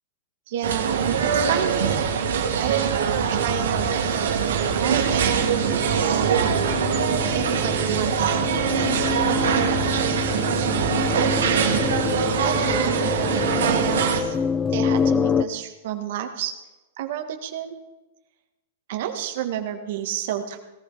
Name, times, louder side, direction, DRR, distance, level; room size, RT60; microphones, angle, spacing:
voice 1, 0.5-2.1 2.6-6.5 7.3-8.4 8.8-11.8 12.4-13.3 13.6-14.4 14.7-16.5 17.0-17.8 18.9-20.6, right 10 dB, 60° right, 6 dB, 1.8 m, -31 dB
sound 1, 0.6-14.2, right 7 dB, 90° right, 2.3 m, -23 dB
sound 2, 2.3-15.4, left 6 dB, 15° left, 0.6 m, -28 dB
17.5 x 14.0 x 4.3 m, 1.1 s
hypercardioid pair, 140°, 0 cm